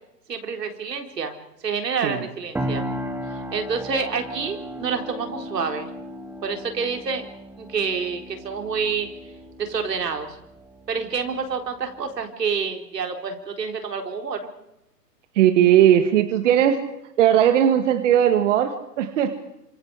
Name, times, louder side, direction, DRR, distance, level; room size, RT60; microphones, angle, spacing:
voice 1, 0.3-1.3 1.6-2.8 3.5-5.9 6.4-7.3 7.6-9.1 9.6-10.4 10.9-14.4, right 5 dB, 75° right, 5 dB, 4.3 m, -28 dB
sound 1, 2.5-12.3, equal, 5° right, 1.8 m, -36 dB
voice 2, 15.4-16.8 17.2-19.4, right 10 dB, 45° right, 8 dB, 2.0 m, -18 dB
28.0 x 26.5 x 4.9 m, 0.85 s
hypercardioid pair, 130°, 49 cm